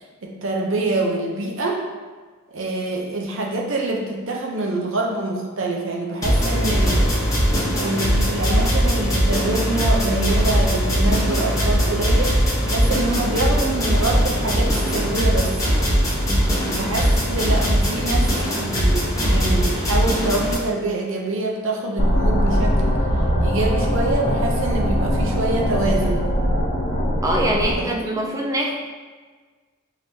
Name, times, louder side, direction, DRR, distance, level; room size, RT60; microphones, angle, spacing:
voice 1, 0.2-1.8 2.5-7.1 7.7-15.7 16.7-23.0 23.4-26.3 27.7-28.3, right 2 dB, 65° right, -1 dB, 0.7 m, -25 dB
sound 1, 6.2-20.5, equal, 15° left, 0.9 m, -20 dB
sound 2, 22.0-27.7, equal, 50° left, 0.9 m, -21 dB
voice 2, 27.2-28.7, right 1 dB, 15° right, -1 dB, 0.5 m, -23 dB
4.7 x 3.5 x 2.8 m, 1.4 s
head